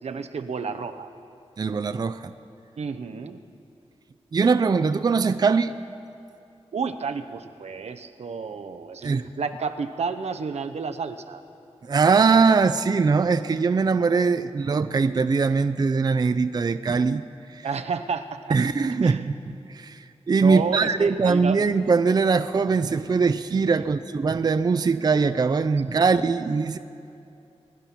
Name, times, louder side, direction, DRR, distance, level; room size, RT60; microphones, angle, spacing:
voice 1, 0.0-1.1 2.8-3.4 6.7-11.4 17.6-18.6 19.0-19.2 20.4-21.6, right 5 dB, 80° right, 8 dB, 0.7 m, -31 dB
voice 2, 1.6-2.3 4.3-5.7 9.0-9.3 11.8-17.2 17.5-17.7 18.5-26.8, right 4 dB, 40° right, 11 dB, 0.4 m, -21 dB
21.0 x 11.0 x 5.8 m, 2.7 s
wide cardioid pair, 115°, 11 cm